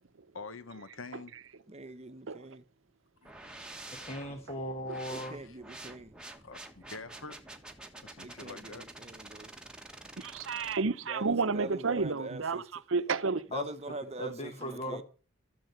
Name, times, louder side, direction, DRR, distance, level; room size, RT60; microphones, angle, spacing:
voice 1, 0.3-1.3 3.2-3.3 5.0-5.6 6.4-7.4 8.0-8.9, left 3 dB, 80° left, 1.1 m, -46 dB
voice 2, 1.7-2.6 5.1-6.1 8.2-9.5 11.1-12.6 13.5-15.0, right 2 dB, 30° right, 0.9 m, -43 dB
sound 1, 3.2-10.7, right 2 dB, 5° right, 1.5 m, -48 dB
voice 3, 4.0-5.4 13.5-13.7 14.2-15.0, left 1 dB, 30° left, 1.2 m, -37 dB
voice 4, 10.2-13.4, right 4 dB, 75° right, 0.8 m, -31 dB
13.5 x 7.5 x 8.0 m
head